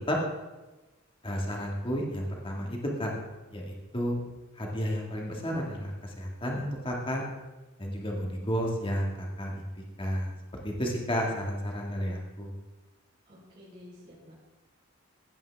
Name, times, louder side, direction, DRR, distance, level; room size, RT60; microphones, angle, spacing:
voice 1, 1.2-3.1 3.5-4.2 4.6-7.2 7.8-9.7 10.0-10.3 10.6-12.5, equal, 25° left, -1 dB, 2.0 m, -32 dB
voice 2, 13.3-14.3, left 1 dB, 40° right, -9 dB, 4.0 m, -51 dB
15.5 x 9.1 x 3.5 m, 1.1 s
head